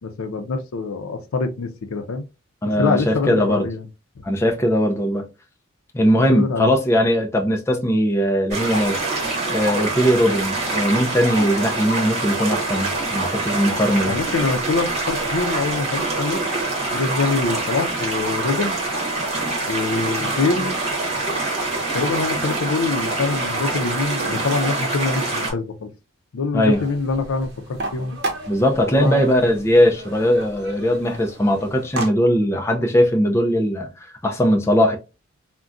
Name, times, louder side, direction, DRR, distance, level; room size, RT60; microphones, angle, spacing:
voice 1, 0.0-2.2 2.6-3.8 4.2-4.3 6.2-6.7 14.1-16.4 16.9-18.8 19.7-20.8 21.9-25.9 26.3-28.2 29.0-29.2, left 4 dB, 85° left, 0.5 m, -24 dB
voice 2, 2.6-3.7 4.2-5.3 5.9-9.0 9.5-14.2 26.5-26.8 28.5-35.0, equal, 15° left, 0.4 m, -19 dB
sound 1, 8.5-25.5, right 2 dB, 30° right, 1.0 m, -25 dB
sound 2, 26.7-32.1, right 2 dB, 55° right, 0.7 m, -33 dB
3.7 x 2.2 x 2.4 m
head